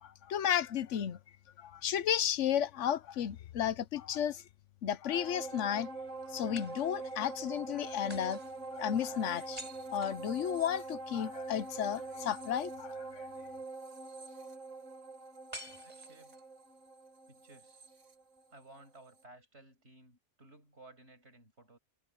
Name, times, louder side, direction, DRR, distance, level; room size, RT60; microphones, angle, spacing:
voice 1, 0.0-1.2 1.6-4.4 4.8-5.9 6.3-8.4 8.7-9.6 9.9-13.2, left 9 dB, 80° left, 1.1 m, -33 dB
sound 1, 3.5-4.5 6.6-7.3 8.1-10.9 15.5-16.6, equal, 35° right, 6.2 m, -51 dB
sound 2, 5.1-18.8 19.2-19.3, right 3 dB, 85° right, 2.2 m, -44 dB
voice 2, 15.8-16.4 17.3-17.8 18.5-21.8, right 2 dB, 65° right, 6.7 m, -57 dB
omnidirectional pair, 1.2 m